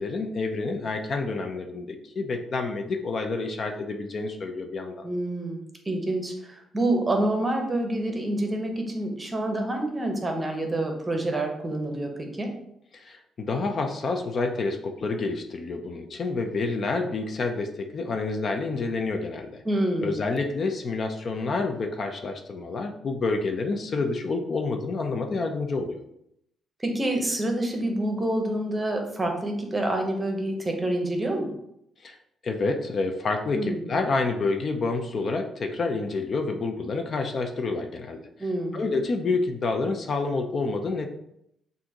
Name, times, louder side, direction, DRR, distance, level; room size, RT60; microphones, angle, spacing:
voice 1, 0.0-5.1 12.9-19.6 20.0-26.0 32.0-32.2 32.4-38.2 38.7-41.1, left 3 dB, 45° left, 5 dB, 0.5 m, -28 dB
voice 2, 5.0-12.5 19.6-20.1 26.8-31.5 33.5-33.8 38.4-38.8, right 1 dB, 20° right, 3 dB, 0.9 m, -27 dB
6.0 x 2.6 x 2.9 m, 0.77 s
cardioid pair, 100°, 0 cm